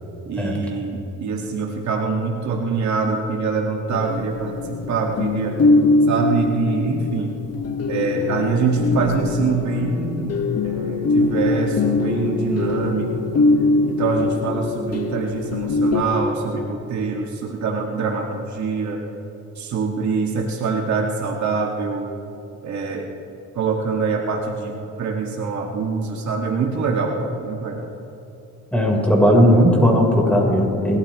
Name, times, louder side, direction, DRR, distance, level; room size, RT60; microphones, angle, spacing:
voice 1, 0.3-5.6 6.1-7.3 7.9-13.3 13.8-19.0 19.6-22.1 22.6-23.1 23.6-27.9, right 4 dB, 65° right, 0 dB, 1.9 m, -24 dB
sound 1, 3.9-16.0, left 3 dB, 55° left, 1.5 m, -22 dB
voice 2, 28.7-31.0, equal, 5° left, -1 dB, 4.1 m, -16 dB
29.0 x 13.5 x 3.1 m, 3.0 s
cardioid pair, 90°, 30 cm